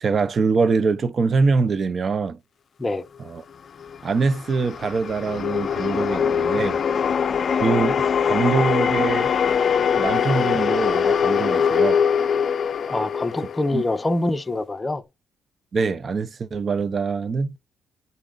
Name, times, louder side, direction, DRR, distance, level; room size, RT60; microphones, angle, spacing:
voice 1, 0.0-2.4 3.3-3.4 4.0-6.8 7.6-9.3 9.9-12.0 13.7-13.8 15.7-17.5, right 4 dB, 45° right, 0.5 m, -23 dB
sound 1, 3.8-14.2, left 7 dB, 50° left, 0.4 m, -22 dB
voice 2, 12.9-15.0, left 2 dB, 20° left, 0.7 m, -25 dB
9.8 x 4.1 x 2.4 m
cardioid pair, 90°, 0 cm